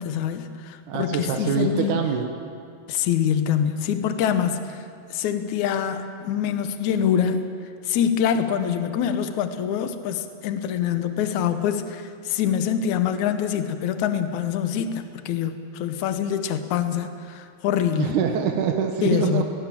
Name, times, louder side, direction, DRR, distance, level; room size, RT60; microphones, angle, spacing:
voice 1, 0.0-2.0 2.9-4.8 5.1-7.5 7.8-18.2 19.0-19.4, left 8 dB, 90° left, 9 dB, 1.7 m, -25 dB
voice 2, 0.9-2.3 18.0-19.4, right 7 dB, 65° right, 3 dB, 2.1 m, -24 dB
22.5 x 19.0 x 7.4 m, 2.3 s
omnidirectional pair, 4.7 m